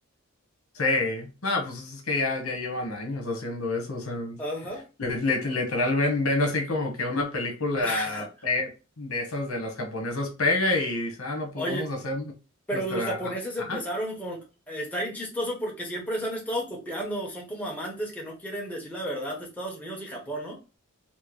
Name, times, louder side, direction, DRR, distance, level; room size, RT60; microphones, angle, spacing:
voice 1, 0.7-4.4 5.0-8.7 9.0-12.2 12.7-13.2 13.7-13.8, left 2 dB, 90° left, 1.2 m, -28 dB
voice 2, 4.4-4.8 7.8-8.3 11.5-11.9 12.7-20.6, equal, 5° left, 1.0 m, -32 dB
4.4 x 2.0 x 3.1 m
head